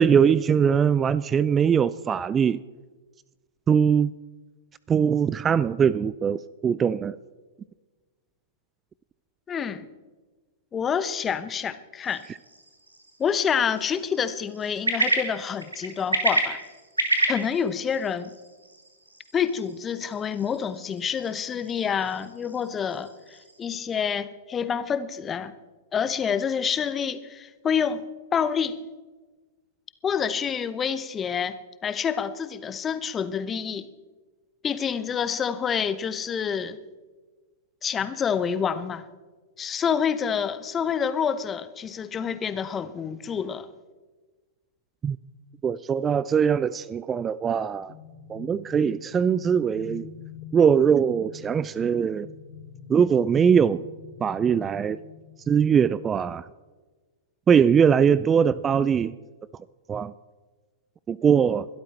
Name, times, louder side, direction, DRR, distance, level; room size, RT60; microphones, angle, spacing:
voice 1, 0.0-2.6 3.7-4.1 4.9-7.2 45.0-45.2 45.6-47.9 48.3-50.1 50.5-52.3 52.9-53.8 54.2-55.0 55.5-56.5 57.5-59.1 59.9-60.1 61.1-61.7, right 7 dB, 20° right, 19 dB, 0.4 m, -21 dB
voice 2, 9.5-9.9 10.7-12.2 13.2-16.6 17.3-18.3 19.3-25.5 25.9-28.1 28.3-28.8 30.0-33.9 34.6-36.8 37.8-39.1 39.6-43.7, left 7 dB, 20° left, 14 dB, 1.0 m, -27 dB
sound 1, 12.0-23.7, right 2 dB, 90° right, 2.6 m, -32 dB
sound 2, 47.9-56.1, left 8 dB, 55° left, 3.3 m, -45 dB
22.0 x 12.5 x 4.4 m, 1.3 s
figure-of-eight pair, 105°, 0 cm